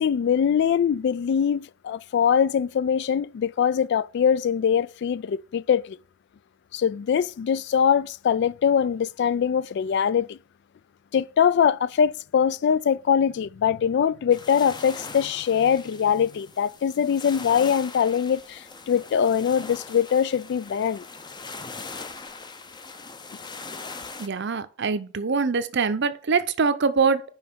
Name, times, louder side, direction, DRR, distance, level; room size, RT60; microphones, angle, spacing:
voice 1, 0.0-6.0 6.7-10.4 11.1-21.0, left 7 dB, 55° left, 0.3 m, -22 dB
sound 1, 14.3-24.3, left 4 dB, 20° left, 0.6 m, -41 dB
voice 2, 24.2-27.2, right 5 dB, 60° right, 0.7 m, -23 dB
5.7 x 5.2 x 6.7 m
head